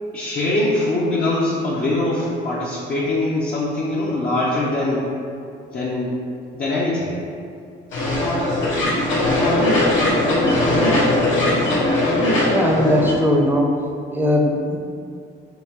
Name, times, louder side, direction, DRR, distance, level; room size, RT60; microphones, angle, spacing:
voice 1, 0.1-5.1 5.7-6.2 6.5-7.1, left 2 dB, 50° left, -7 dB, 0.8 m, -22 dB
sound 1, 7.9-13.1, left 1 dB, 75° left, 1.4 m, -19 dB
voice 2, 12.5-13.7 14.1-14.8, left 1 dB, 10° right, 0 dB, 0.7 m, -19 dB
5.6 x 3.0 x 3.0 m, 2.4 s
cardioid pair, 90°, 20 cm